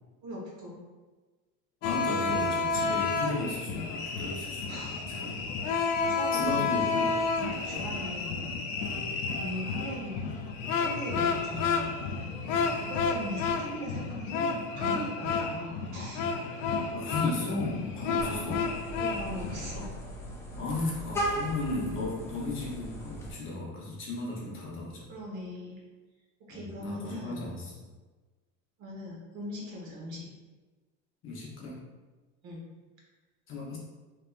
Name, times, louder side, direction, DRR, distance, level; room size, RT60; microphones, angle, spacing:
voice 1, 0.2-0.8 4.7-5.0 5.8-6.7 7.4-8.4 9.3-10.2 10.7-11.9 12.7-16.3 18.2-18.4 19.0-19.9 25.1-25.8 26.5-27.5 28.8-30.3 32.4-32.6, equal, 55° right, -3 dB, 1.1 m, -40 dB
sound 1, 1.8-19.9, left 4 dB, 90° left, 0.6 m, -31 dB
voice 2, 1.8-5.5 5.9-7.2 7.7-7.9 9.2-9.4 12.4-12.7 16.6-18.7 20.6-25.1 26.5-27.9 31.2-31.8 33.5-33.8, left 3 dB, 35° left, -4 dB, 0.8 m, -35 dB
Vehicle horn car horn honking, 18.2-23.3, right 1 dB, 5° left, 0.3 m, -37 dB
3.4 x 3.0 x 2.4 m, 1.3 s
supercardioid pair, 140°, 37 cm